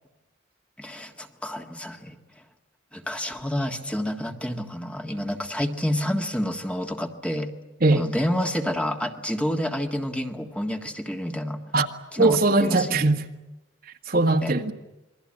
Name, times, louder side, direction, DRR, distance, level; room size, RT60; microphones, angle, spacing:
voice 1, 0.8-2.1 2.9-7.5 7.9-11.6 12.1-13.0 14.4-14.5, equal, 5° left, 1.7 m, -29 dB
voice 2, 12.2-13.2 14.1-14.7, right 2 dB, 50° right, 1.8 m, -20 dB
27.5 x 22.5 x 8.8 m
head